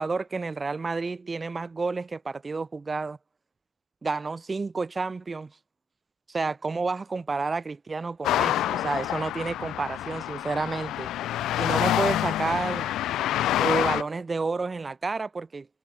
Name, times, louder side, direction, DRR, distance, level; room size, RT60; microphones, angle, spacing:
voice 1, 0.0-3.2 4.0-5.5 6.3-11.1 11.6-12.9 13.6-15.7, right 4 dB, 20° right, 2.6 m, -30 dB
sound 1, 8.2-14.0, left 13 dB, 65° left, 1.7 m, -27 dB
cardioid pair, 115°, 0 cm